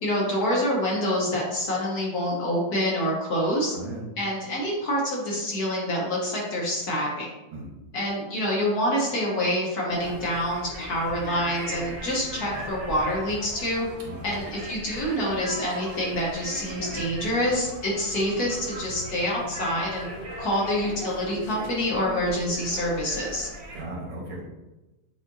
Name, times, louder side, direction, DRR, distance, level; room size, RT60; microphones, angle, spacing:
voice 1, 0.0-3.8 4.2-7.3 7.9-13.9 14.2-20.1 20.4-23.5, left 1 dB, 55° left, -4 dB, 1.4 m, -27 dB
voice 2, 3.7-4.0 7.5-7.7 14.0-14.3 23.7-24.4, right 1 dB, 70° right, -3 dB, 1.8 m, -36 dB
sound 1, 9.9-23.8, right 1 dB, 90° right, 0.5 m, -38 dB
7.1 x 2.6 x 2.6 m, 1.1 s
omnidirectional pair, 2.2 m